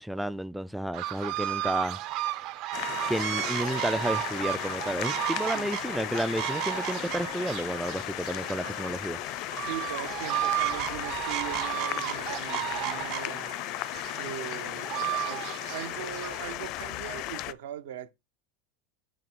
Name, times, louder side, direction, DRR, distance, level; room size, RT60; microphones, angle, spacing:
voice 1, 0.0-2.0 3.1-9.2, equal, ahead, 0.3 m, -31 dB
sound 1, 0.9-16.5, right 15 dB, 55° right, 0.7 m, -34 dB
sound 2, 2.7-17.5, left 16 dB, 55° left, 0.5 m, -36 dB
voice 2, 5.4-5.7 9.6-13.7 14.1-18.1, right 11 dB, 80° right, 0.9 m, -40 dB
8.4 x 3.6 x 4.5 m
supercardioid pair, 115°, 0 cm